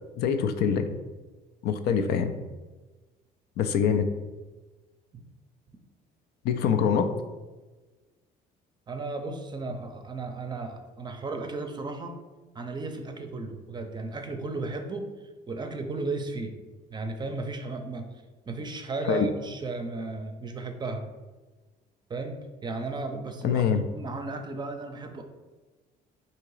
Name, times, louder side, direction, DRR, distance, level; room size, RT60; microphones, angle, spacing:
voice 1, 0.2-0.9 1.6-2.3 3.6-4.0 6.4-7.1 19.1-19.3 23.4-23.8, left 7 dB, 70° left, 8 dB, 0.4 m, -24 dB
voice 2, 8.9-12.2 12.5-15.1 15.5-16.5 16.9-18.1 18.5-21.1 22.1-23.6 23.9-25.2, right 3 dB, 25° right, 5 dB, 0.5 m, -34 dB
3.7 x 2.8 x 4.7 m, 1.2 s
cardioid pair, 110°, 17 cm